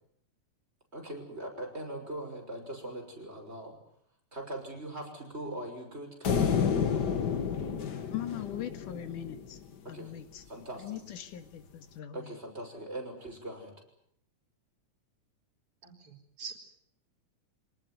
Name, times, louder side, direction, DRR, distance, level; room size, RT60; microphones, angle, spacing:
voice 1, 0.9-3.8 4.3-6.5 9.9-10.1 10.5-11.0 12.1-13.7, right 1 dB, 20° right, 2 dB, 6.1 m, -41 dB
sound 1, 6.2-9.6, left 7 dB, 45° left, 1.5 m, -30 dB
voice 2, 8.1-9.6 9.9-10.4 10.8-12.4, left 11 dB, 85° left, 10 dB, 3.2 m, -40 dB
voice 3, 15.8-16.5, right 5 dB, 45° right, 3 dB, 5.4 m, -44 dB
25.0 x 19.5 x 9.3 m, 0.70 s
omnidirectional pair, 3.6 m